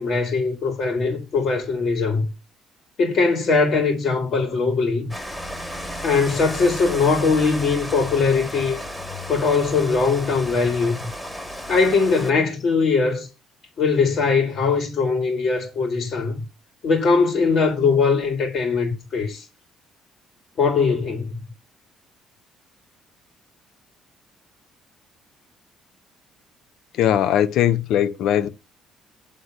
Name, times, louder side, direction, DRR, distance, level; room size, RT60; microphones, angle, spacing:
voice 1, 0.0-2.3 3.0-5.1 6.0-8.8 9.3-11.1 11.7-13.3 13.8-16.4 16.8-19.4 20.6-21.4, left 4 dB, 55° left, 2.5 m, -21 dB
Rain, 5.1-12.3, equal, 5° left, 1.3 m, -33 dB
voice 2, 26.9-28.5, left 10 dB, 80° left, 0.7 m, -20 dB
8.1 x 3.8 x 6.4 m
cardioid pair, 95°, 0 cm